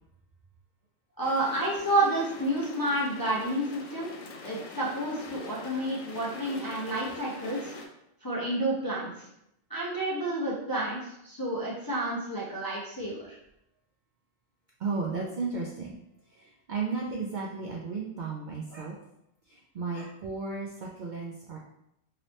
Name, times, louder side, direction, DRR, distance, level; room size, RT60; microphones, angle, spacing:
sound 1, 1.2-7.9, left 3 dB, 80° left, 0.9 m, -44 dB
voice 1, 1.2-4.1 4.4-7.7 8.2-9.3 9.7-13.4, right 1 dB, 30° left, -7 dB, 0.4 m, -30 dB
voice 2, 14.8-15.9 16.3-18.9 19.5-21.6, right 4 dB, 65° right, -3 dB, 0.4 m, -34 dB
2.9 x 2.8 x 3.0 m, 0.81 s
omnidirectional pair, 1.3 m